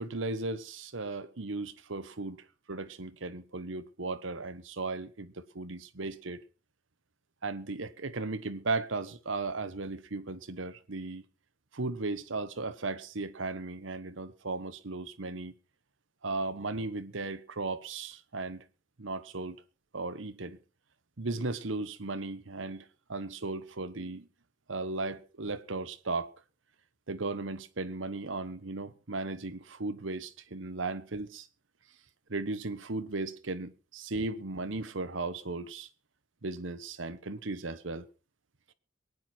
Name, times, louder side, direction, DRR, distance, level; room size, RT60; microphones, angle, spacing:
voice 1, 0.0-6.4 7.4-11.2 11.7-15.5 16.2-18.6 19.0-19.6 19.9-20.6 21.2-24.3 24.7-26.3 27.1-31.5 32.3-35.9 36.4-38.1, right 3 dB, 70° right, 1.1 m, -36 dB
23.0 x 9.6 x 4.4 m
head